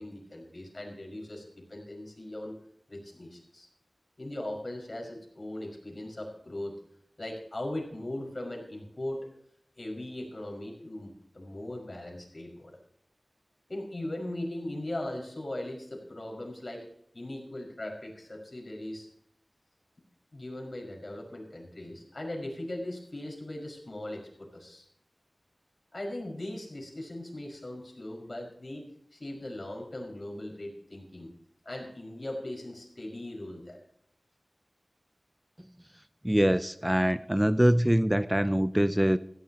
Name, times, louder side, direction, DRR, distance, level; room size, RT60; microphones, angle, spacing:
voice 1, 0.0-2.5 2.9-3.7 4.2-6.7 7.2-9.3 9.8-12.8 13.7-16.8 17.1-19.1 20.3-24.9 25.9-28.8 29.1-31.3 31.7-33.8, left 1 dB, 50° left, 0 dB, 5.3 m, -39 dB
voice 2, 36.2-39.2, equal, 15° right, 13 dB, 0.4 m, -24 dB
16.5 x 14.5 x 2.9 m, 0.69 s
wide cardioid pair, 50°, 0 cm